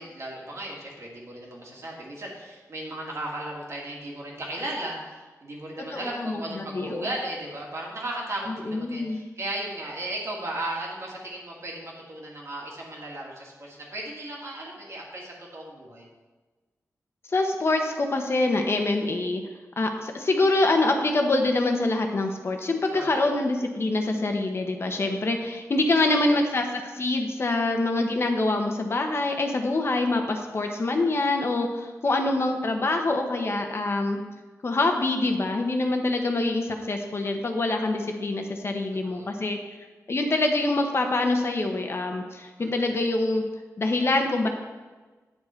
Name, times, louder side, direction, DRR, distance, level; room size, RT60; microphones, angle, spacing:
voice 1, 0.0-16.1 22.9-23.1 26.0-26.4 33.7-33.9 39.1-39.3 42.6-42.9, right 1 dB, 55° right, -2 dB, 2.3 m, -36 dB
voice 2, 5.9-7.1 8.7-9.2 17.3-19.4 19.8-34.2 34.6-39.6 40.1-43.4 43.8-44.5, left 2 dB, 45° left, 4 dB, 1.0 m, -25 dB
9.2 x 7.3 x 4.5 m, 1.3 s
wide cardioid pair, 105°, 6 cm